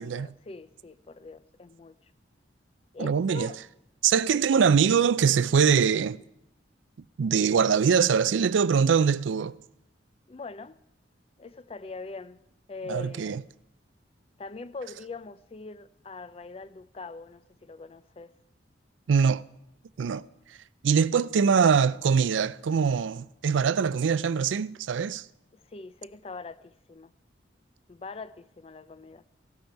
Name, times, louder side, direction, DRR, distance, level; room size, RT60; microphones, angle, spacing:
voice 1, 0.0-2.1 2.9-3.6 10.3-10.8 11.4-12.4 12.7-13.4 14.4-18.3 25.5-27.1 27.9-29.2, left 3 dB, 30° left, 0.4 m, -42 dB
voice 2, 3.0-3.5 4.0-6.2 7.2-9.6 12.9-13.4 19.1-19.4 20.0-20.2 20.8-25.2, right 6 dB, 85° right, 0.4 m, -23 dB
16.5 x 11.5 x 4.6 m
head